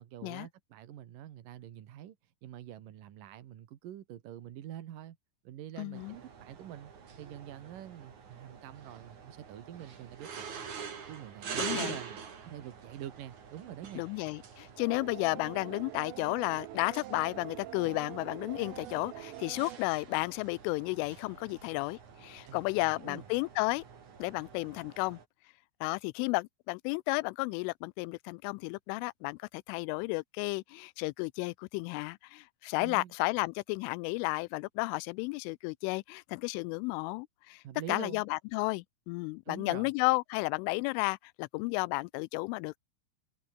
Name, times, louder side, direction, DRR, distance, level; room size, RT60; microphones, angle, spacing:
voice 1, 0.0-5.2 5.4-6.9 7.2-10.7 11.1-14.1 22.4-23.3 32.8-33.1 37.6-38.2 39.5-39.9, right 11 dB, 60° right, 2.4 m, -46 dB
voice 2, 5.8-6.1 11.6-12.0 14.0-23.8 24.2-25.2 25.8-37.6 37.9-42.8, left 25 dB, 85° left, 3.0 m, -33 dB
sound 1, 5.9-25.3, right 6 dB, 40° right, 4.1 m, -46 dB
sound 2, 14.8-19.8, right 17 dB, 80° right, 3.7 m, -45 dB
omnidirectional pair, 5.7 m